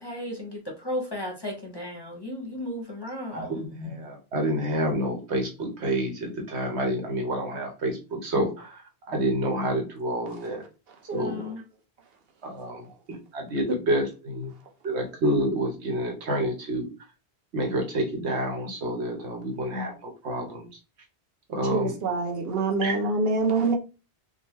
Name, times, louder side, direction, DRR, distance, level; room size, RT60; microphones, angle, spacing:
voice 1, 0.0-3.6 11.1-11.6, left 1 dB, 25° left, 0.7 m, -34 dB
voice 2, 3.3-8.8 9.1-10.6 11.1-11.4 12.4-14.5 14.8-16.9 17.5-20.7 21.5-22.0 22.8-23.0, right 1 dB, 85° right, 1.2 m, -28 dB
voice 3, 21.7-23.7, right 3 dB, 65° right, 1.0 m, -25 dB
3.9 x 2.3 x 3.0 m
omnidirectional pair, 1.1 m